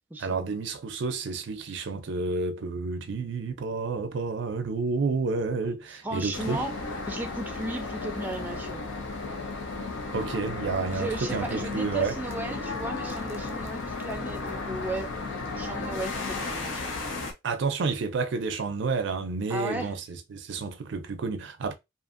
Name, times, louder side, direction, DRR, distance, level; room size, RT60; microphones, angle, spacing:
voice 1, 0.2-6.6 10.1-12.1 17.4-21.7, right 4 dB, 65° right, 0.4 m, -30 dB
voice 2, 6.0-6.7 7.1-8.8 10.9-15.1 15.6-16.9 19.5-19.9, right 2 dB, 10° right, 0.5 m, -35 dB
sound 1, 6.3-17.3, left 3 dB, 80° left, 0.6 m, -34 dB
2.7 x 2.5 x 2.5 m
head